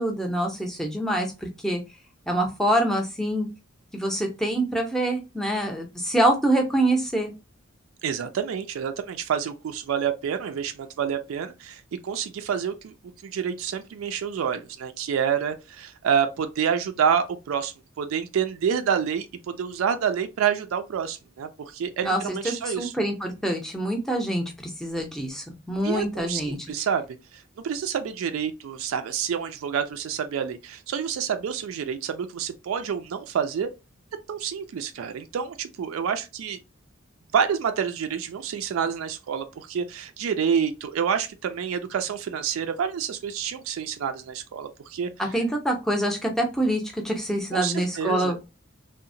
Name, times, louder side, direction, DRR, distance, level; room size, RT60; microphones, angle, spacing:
voice 1, 0.0-1.8 2.3-3.5 3.9-7.3 22.0-26.6 45.2-48.4, right 1 dB, ahead, 0.5 m, -25 dB
voice 2, 8.0-12.9 13.2-22.9 25.8-27.1 27.3-33.7 34.3-36.6 37.3-45.1 47.5-48.4, right 7 dB, 90° right, 0.3 m, -28 dB
2.8 x 2.0 x 2.5 m
head